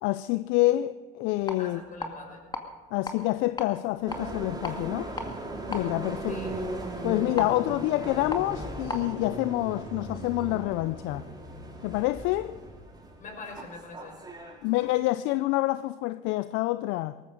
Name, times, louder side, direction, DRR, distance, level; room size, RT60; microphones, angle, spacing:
voice 1, 0.0-1.8 2.9-5.1 5.7-6.4 7.0-11.3 11.8-12.6 14.6-17.2, left 17 dB, 65° left, 0.5 m, -27 dB
sound 1, 1.3-9.1, left 2 dB, 20° left, 2.2 m, -40 dB
voice 2, 1.6-2.4 6.3-6.6 13.2-14.2, left 3 dB, 40° left, 6.2 m, -43 dB
sound 2, 4.1-14.9, right 2 dB, 20° right, 4.8 m, -38 dB
18.5 x 14.5 x 5.2 m
hypercardioid pair, 75°, 21 cm